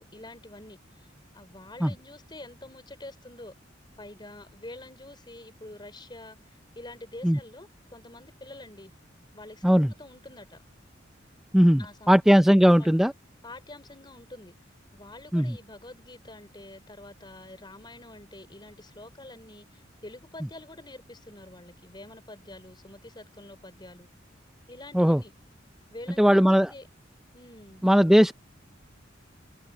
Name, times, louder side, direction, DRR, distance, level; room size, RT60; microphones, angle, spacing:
voice 1, 0.0-3.5 4.0-8.9 9.3-10.6 11.8-12.2 12.5-12.9 13.4-14.5 14.9-24.1 24.7-25.3 25.9-26.9 27.3-27.8, left 2 dB, 25° left, 4.1 m, -46 dB
voice 2, 11.5-13.1 15.3-15.5 24.9-25.2 26.2-26.7 27.8-28.3, equal, ahead, 0.4 m, -19 dB
head